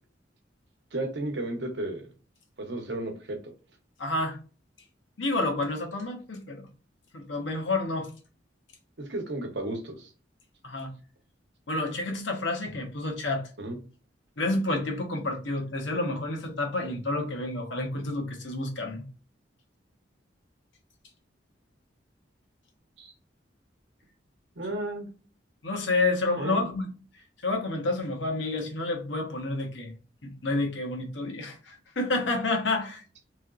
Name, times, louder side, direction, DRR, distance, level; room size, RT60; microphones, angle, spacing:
voice 1, 0.9-2.1 2.6-3.5 9.0-10.1 13.6-13.8 23.0-23.1 24.6-25.1 26.4-26.7, right 1 dB, 65° right, 3 dB, 0.8 m, -33 dB
voice 2, 4.0-4.4 5.2-6.7 7.1-8.1 10.6-10.9 11.7-13.5 14.4-19.0 25.6-26.9 27.4-29.9 30.2-33.0, left 2 dB, 85° left, 1 dB, 1.0 m, -29 dB
3.1 x 2.9 x 2.4 m, 0.35 s
head